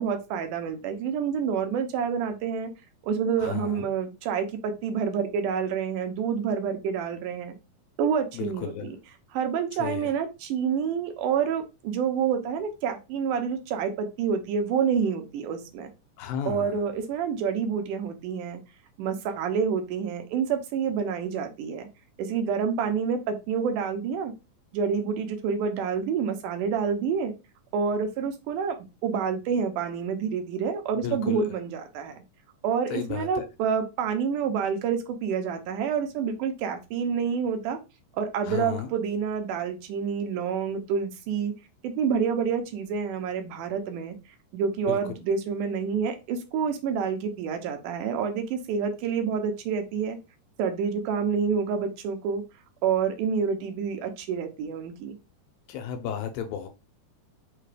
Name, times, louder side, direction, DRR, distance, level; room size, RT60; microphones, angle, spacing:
voice 1, 0.0-2.7 3.0-7.5 8.0-9.0 9.3-15.9 16.5-18.6 19.0-21.9 22.2-24.3 24.7-27.3 27.7-28.8 29.0-32.2 32.6-37.8 38.1-41.5 41.8-44.2 44.5-50.2 50.6-52.4 52.8-55.2, right 6 dB, 80° right, 6 dB, 2.0 m, -28 dB
voice 2, 3.4-3.9 8.3-8.9 9.8-10.1 16.2-16.8 30.9-31.4 32.9-33.5 38.4-38.9 44.9-45.0 55.7-56.7, left 9 dB, 85° left, 6 dB, 2.4 m, -33 dB
5.6 x 2.2 x 3.2 m, 0.27 s
omnidirectional pair, 4.0 m